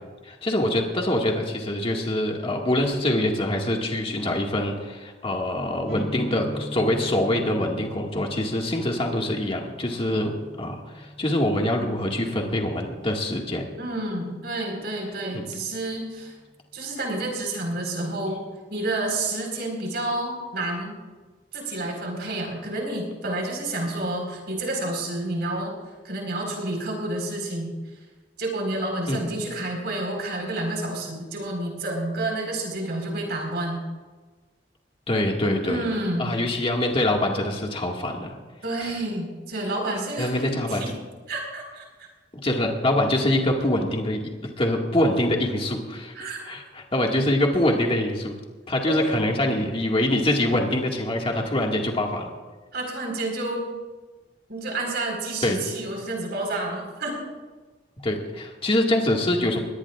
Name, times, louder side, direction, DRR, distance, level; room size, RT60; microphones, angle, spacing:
voice 1, 0.2-13.7 15.3-15.4 29.1-29.2 35.1-35.8 36.2-38.4 38.8-38.9 40.2-40.9 42.4-44.2 44.6-48.4 48.7-52.3 55.4-55.6 58.0-59.6, left 1 dB, 30° left, 0 dB, 1.9 m, -24 dB
sound 1, 5.9-13.5, left 1 dB, 60° left, 1.8 m, -40 dB
voice 2, 13.8-16.3 16.7-18.4 18.7-20.9 21.5-25.7 26.0-27.7 28.4-33.8 35.6-36.3 38.6-40.9 41.3-42.1 46.1-46.5 48.9-49.2 52.7-53.6 54.5-57.2, right 2 dB, 65° right, 1 dB, 4.5 m, -29 dB
22.0 x 18.5 x 2.5 m, 1.3 s
head